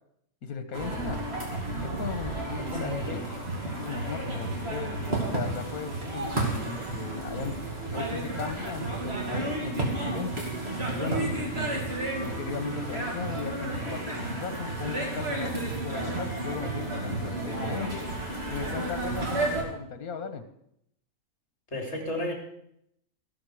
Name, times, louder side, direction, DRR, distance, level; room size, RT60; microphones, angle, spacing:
voice 1, 0.4-1.2 1.7-3.2 3.6-5.0 5.3-7.6 7.9-10.5 10.9-11.9 12.2-18.0 18.5-20.4, left 5 dB, 80° left, 9 dB, 1.7 m, -37 dB
sound 1, 0.7-19.6, right 2 dB, 45° right, 3.1 m, -32 dB
voice 2, 2.6-3.2 21.7-22.3, left 1 dB, 50° left, 1 dB, 3.8 m, -33 dB
14.5 x 13.0 x 4.9 m, 0.76 s
omnidirectional pair, 1.5 m